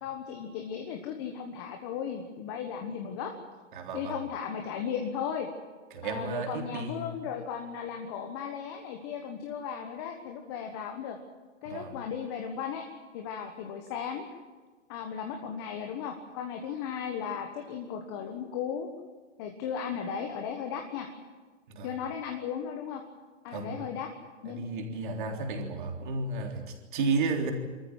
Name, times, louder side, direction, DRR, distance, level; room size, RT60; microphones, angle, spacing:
voice 1, 0.0-3.3 3.9-5.5 6.0-11.2 11.6-12.8 13.1-14.2 14.9-18.9 19.4-21.1 21.8-23.0 23.4-24.1 24.4-24.7, left 7 dB, 20° left, 3 dB, 1.3 m, -36 dB
voice 2, 3.7-4.2 5.9-7.2 11.7-11.9 21.7-21.9 23.5-23.9 24.5-27.5, right 4 dB, 40° right, 2 dB, 3.6 m, -33 dB
26.0 x 14.0 x 9.7 m, 1.4 s
hypercardioid pair, 160°, 38 cm